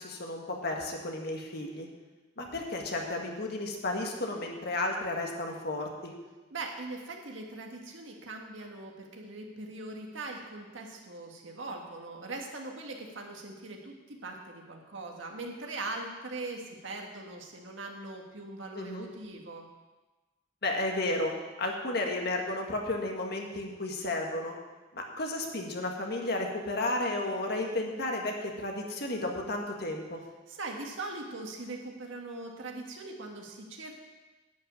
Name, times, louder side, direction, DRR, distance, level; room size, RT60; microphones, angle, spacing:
voice 1, 0.0-1.9 2.4-6.1 18.7-19.1 20.6-21.3 21.6-24.5 24.9-30.2, left 2 dB, 55° left, 2 dB, 1.7 m, -33 dB
voice 2, 6.5-19.7 30.5-34.0, right 2 dB, 75° right, 2 dB, 1.8 m, -41 dB
11.0 x 5.6 x 8.8 m, 1.2 s
head